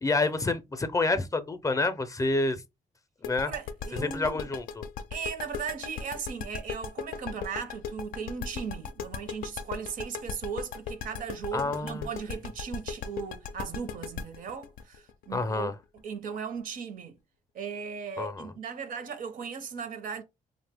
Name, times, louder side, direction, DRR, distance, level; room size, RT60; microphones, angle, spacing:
voice 1, 0.0-2.6 3.2-3.5 4.0-4.8 11.5-12.1 15.3-15.7 18.2-18.5, left 3 dB, 25° left, 0.5 m, -28 dB
sound 1, 3.2-16.0, left 6 dB, 85° left, 0.4 m, -37 dB
voice 2, 3.4-4.4 5.1-17.2 17.5-20.2, right 6 dB, 75° right, 0.6 m, -37 dB
2.7 x 2.1 x 3.4 m
cardioid pair, 75°, 14 cm